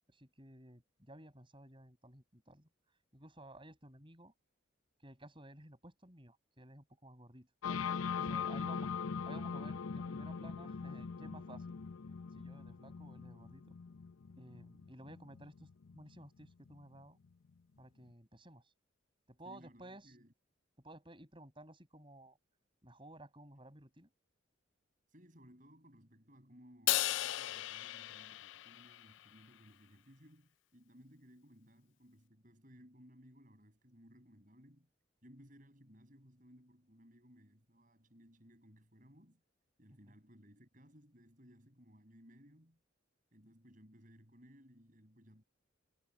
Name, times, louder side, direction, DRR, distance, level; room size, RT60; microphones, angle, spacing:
voice 1, 0.1-4.3 5.0-7.5 8.2-8.9 9.2-11.8 12.3-13.8 14.4-17.2 17.8-18.7 19.3-20.1 20.8-22.4 22.8-24.1 40.1-40.2, right 1 dB, 25° right, 7.9 m, -55 dB
sound 1, 7.6-17.3, left 6 dB, 90° left, 0.7 m, -41 dB
voice 2, 8.4-8.7 19.4-20.3 25.1-34.9 35.2-39.4 39.8-42.8 43.3-45.4, equal, 40° right, 6.1 m, -61 dB
Crash cymbal, 26.9-29.3, left 16 dB, 65° left, 0.3 m, -36 dB
head